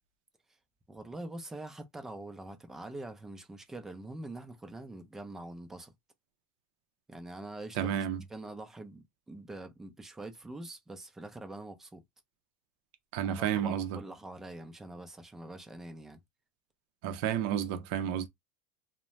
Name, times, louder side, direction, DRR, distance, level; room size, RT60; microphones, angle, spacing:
voice 1, 0.9-5.9 7.1-7.9 8.3-12.0 13.2-16.2, right 2 dB, 10° right, 0.5 m, -44 dB
voice 2, 7.8-8.2 13.1-14.0 17.0-18.3, right 9 dB, 70° right, 0.6 m, -31 dB
2.6 x 2.1 x 3.1 m
cardioid pair, 155°, 4 cm